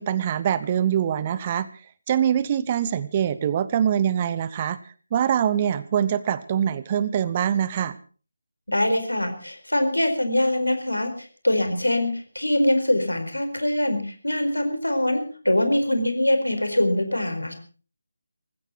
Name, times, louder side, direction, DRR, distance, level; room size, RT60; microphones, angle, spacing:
voice 1, 0.0-1.7 2.1-4.8 5.1-8.0, right 9 dB, 25° right, 17 dB, 0.7 m, -23 dB
voice 2, 8.7-17.6, left 1 dB, 75° left, 8 dB, 4.5 m, -23 dB
19.0 x 15.5 x 4.5 m, 0.39 s
figure-of-eight pair, 155°, 0 cm